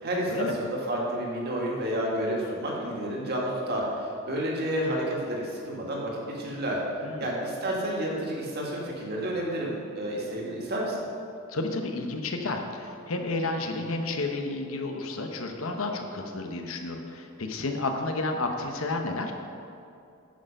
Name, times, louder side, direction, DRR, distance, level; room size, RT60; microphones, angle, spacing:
voice 1, 0.0-6.8 7.2-11.1, right 1 dB, 50° right, -3 dB, 2.1 m, -30 dB
voice 2, 11.5-19.3, left 2 dB, 80° left, 4 dB, 1.0 m, -31 dB
9.5 x 6.7 x 5.4 m, 2.7 s
head